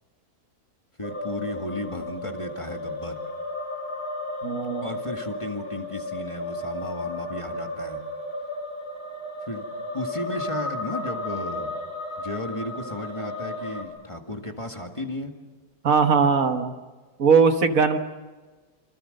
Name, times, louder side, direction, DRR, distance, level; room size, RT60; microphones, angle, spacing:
sound 1, 1.0-13.8, left 1 dB, 85° left, 3.3 m, -34 dB
voice 1, 1.0-3.2 4.8-8.0 9.4-9.7 9.9-11.8 12.2-15.3, left 1 dB, 20° left, 4 dB, 1.8 m, -34 dB
voice 2, 4.4-4.9 15.8-16.7 17.2-18.0, right 5 dB, 60° right, 7 dB, 1.6 m, -19 dB
26.5 x 25.0 x 6.6 m, 1.3 s
omnidirectional pair, 1.6 m